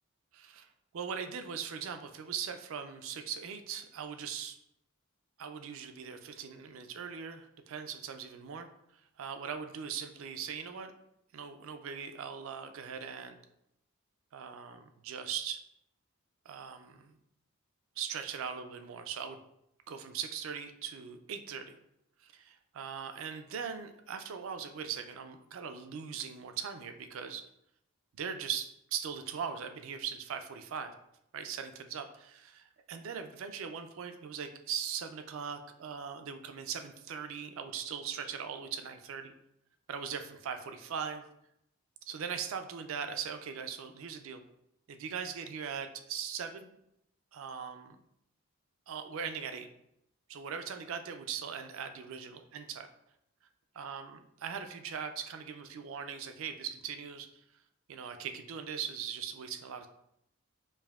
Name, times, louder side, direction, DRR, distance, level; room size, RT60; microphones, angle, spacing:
voice 1, 0.3-0.7 0.9-4.6 5.4-8.7 9.2-10.9 11.3-13.4 14.3-15.6 16.5-17.1 18.0-19.4 19.9-21.8 22.2-27.4 28.2-30.9 31.3-39.3 39.9-41.2 42.0-44.4 44.9-46.7 47.3-48.0 48.9-49.7 50.3-52.9 53.8-57.3 57.9-59.9, right 7 dB, 60° right, 7 dB, 0.4 m, -40 dB
5.3 x 2.5 x 2.4 m, 0.79 s
head